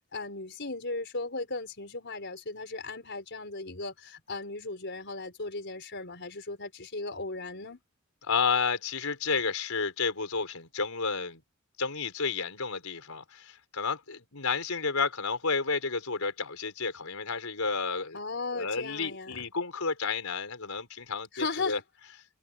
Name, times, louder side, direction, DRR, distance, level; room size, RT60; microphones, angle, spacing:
voice 1, 0.1-7.8 18.1-19.5 21.3-21.8, left 3 dB, 55° left, 4.9 m, -36 dB
voice 2, 8.2-11.4 11.8-18.2 18.5-21.8, left 5 dB, 80° left, 4.1 m, -31 dB
head